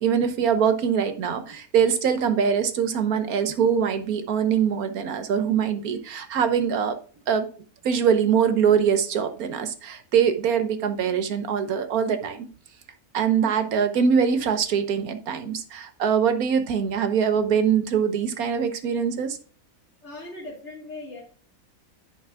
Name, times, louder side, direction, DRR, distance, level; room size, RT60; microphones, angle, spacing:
voice 1, 0.0-7.0 7.3-7.5 7.8-12.5 13.1-19.4, right 7 dB, 80° right, 9 dB, 1.4 m, -23 dB
voice 2, 20.0-21.2, left 2 dB, 50° left, -5 dB, 2.7 m, -39 dB
10.5 x 7.8 x 2.4 m, 0.41 s
omnidirectional pair, 1.6 m